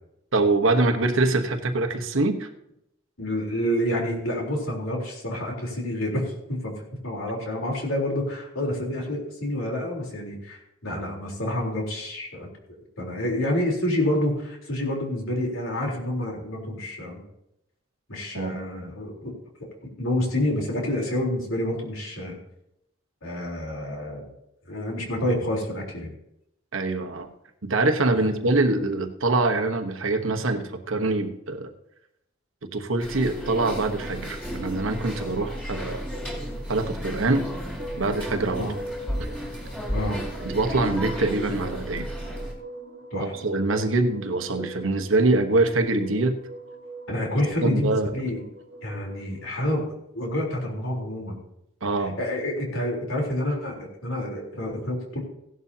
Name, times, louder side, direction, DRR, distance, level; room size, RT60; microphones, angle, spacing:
voice 1, 0.3-2.5 18.3-18.6 26.7-27.3 27.6-31.7 32.6-36.0 36.7-37.5 38.0-38.7 40.4-42.1 43.2-46.4 47.6-48.1 51.8-52.2, right 2 dB, 75° right, 5 dB, 1.2 m, -24 dB
voice 2, 3.2-6.7 7.0-12.5 13.0-17.2 18.1-19.3 19.6-19.7 20.0-22.4 23.2-24.3 24.7-26.1 28.1-28.3 38.6-38.8 39.9-40.2 43.1-43.3 47.1-48.4 48.8-51.4 52.0-55.2, left 1 dB, 85° left, -1 dB, 3.7 m, -28 dB
sound 1, 33.0-42.5, equal, 5° left, 2.8 m, -33 dB
sound 2, 33.0-49.5, right 2 dB, 55° right, 1.4 m, -42 dB
16.5 x 11.0 x 2.8 m, 0.81 s
head